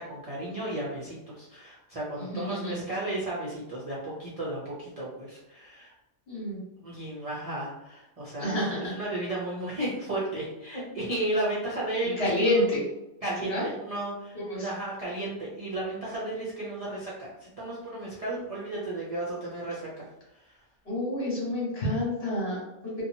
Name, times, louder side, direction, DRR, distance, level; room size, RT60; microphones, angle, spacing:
voice 1, 0.0-5.9 6.8-12.6 13.2-20.0 20.3-20.4, right 1 dB, 45° right, -8 dB, 0.5 m, -34 dB
voice 2, 2.2-2.7 6.3-6.6 8.4-8.9 12.2-12.8 13.4-13.6 14.5-14.7 20.8-23.0, left 1 dB, 55° left, -6 dB, 1.4 m, -28 dB
2.8 x 2.3 x 2.6 m, 0.93 s
omnidirectional pair, 1.2 m